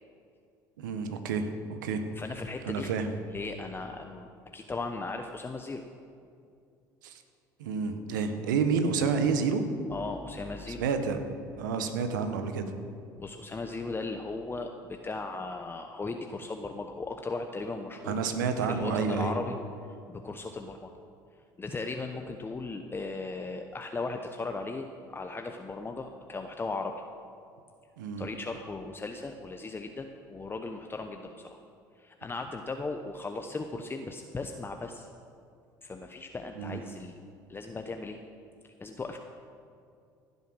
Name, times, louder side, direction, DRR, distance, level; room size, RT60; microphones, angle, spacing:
voice 1, 0.8-2.0 2.7-3.1 7.0-7.2 7.6-9.6 10.8-11.2 11.5-12.6 18.0-19.3 28.0-28.3 36.6-36.8, right 5 dB, 80° right, 8 dB, 1.1 m, -29 dB
voice 2, 2.2-2.9 3.3-5.8 9.9-10.8 13.2-18.2 18.6-19.6 20.1-20.9 21.6-27.0 28.2-31.6 32.0-35.1 35.8-37.2 37.5-38.2 38.8-39.2, left 3 dB, 20° left, 5 dB, 0.9 m, -37 dB
15.5 x 8.2 x 6.2 m, 2.4 s
hypercardioid pair, 65°, 10 cm